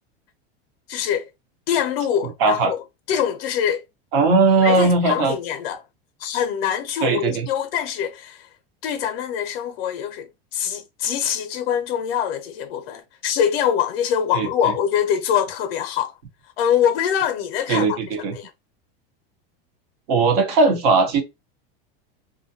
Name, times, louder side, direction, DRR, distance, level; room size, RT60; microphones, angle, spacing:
voice 1, 0.9-1.3 1.7-2.8 3.1-3.8 4.6-5.8 6.2-8.5 8.8-16.1 16.6-18.0 18.3-18.5, left 9 dB, 85° left, 0.5 m, -24 dB
voice 2, 2.4-2.7 4.1-5.3 7.0-7.5 14.3-14.7 17.7-18.3 20.1-21.2, right 3 dB, 80° right, 1.1 m, -18 dB
2.5 x 2.1 x 2.6 m
supercardioid pair, 140°, 29 cm